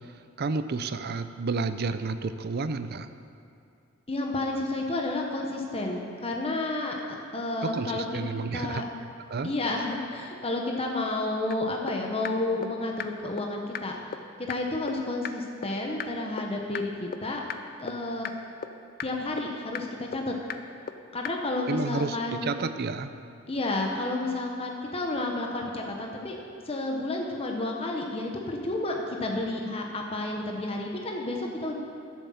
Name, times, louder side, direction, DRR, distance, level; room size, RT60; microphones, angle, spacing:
voice 1, 0.4-3.1 7.6-8.8 9.3-9.5 21.7-23.1, right 4 dB, 50° right, 11 dB, 0.5 m, -30 dB
voice 2, 4.1-7.0 7.3-8.2 8.5-8.8 9.4-14.0 14.5-17.4 17.8-18.3 19.0-20.3 21.1-22.6 23.5-26.4 26.6-31.8, left 2 dB, 30° left, 1 dB, 1.0 m, -31 dB
sound 1, 11.5-11.6 11.9-12.0 12.2-12.3 12.6-12.7 13.0-13.1 13.4-13.5 13.7-13.8 14.1-14.2 14.5-14.6 14.9-15.0 15.2-15.3 15.6-15.7 16.0-16.1 16.4-16.5 16.7-16.8 17.1-17.2 17.5-17.6 17.9-18.0 18.2-18.3 18.6-18.7 19.0-19.1 19.4-19.5 19.7-19.8 20.1-20.2 20.5-20.6 20.9-21.0 21.2-21.3, left 8 dB, 45° left, 0.5 m, -33 dB
11.5 x 7.5 x 7.1 m, 2.5 s
head